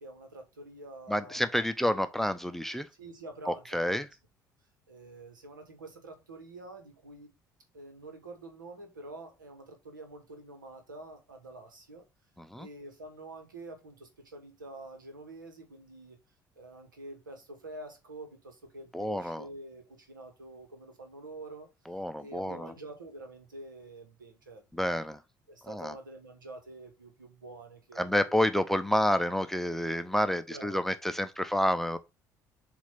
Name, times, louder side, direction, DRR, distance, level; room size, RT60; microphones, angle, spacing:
voice 1, 0.0-1.4 3.0-4.1 4.9-7.3 7.7-12.0 12.6-16.2 16.6-21.7 22.2-25.0 25.5-28.4 28.7-28.8 30.5-30.8, right 2 dB, 80° right, 1.2 m, -47 dB
voice 2, 1.1-2.9 3.5-4.1 12.4-12.7 18.9-19.5 21.9-22.7 24.7-25.2 25.6-25.9 28.0-32.0, equal, 5° left, 0.6 m, -29 dB
7.1 x 2.6 x 5.7 m
figure-of-eight pair, 55°, 11 cm